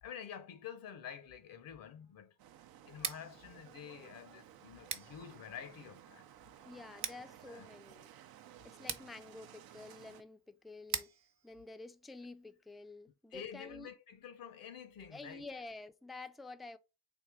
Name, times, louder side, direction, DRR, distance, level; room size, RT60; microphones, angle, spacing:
voice 1, 0.0-2.4 2.8-6.3 6.9-7.7 13.3-15.4, left 8 dB, 65° left, 0.7 m, -49 dB
sound 1, 2.4-10.2, right 11 dB, 80° right, 0.6 m, -57 dB
Scissors, 2.9-12.7, right 7 dB, 50° right, 0.9 m, -47 dB
voice 2, 6.6-8.1 8.6-11.1 11.4-13.9 15.1-16.8, left 3 dB, ahead, 0.3 m, -50 dB
3.6 x 2.7 x 4.6 m
cardioid pair, 75°, 36 cm